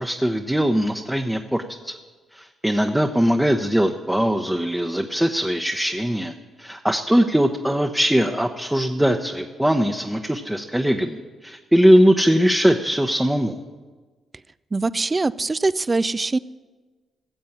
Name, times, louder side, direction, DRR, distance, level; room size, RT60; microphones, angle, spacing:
voice 1, 0.0-1.9 2.3-13.6, equal, 5° right, 3 dB, 0.8 m, -21 dB
voice 2, 14.7-16.4, right 3 dB, 30° right, 18 dB, 0.4 m, -22 dB
15.5 x 7.5 x 7.3 m, 1.4 s
supercardioid pair, 60°, 0 cm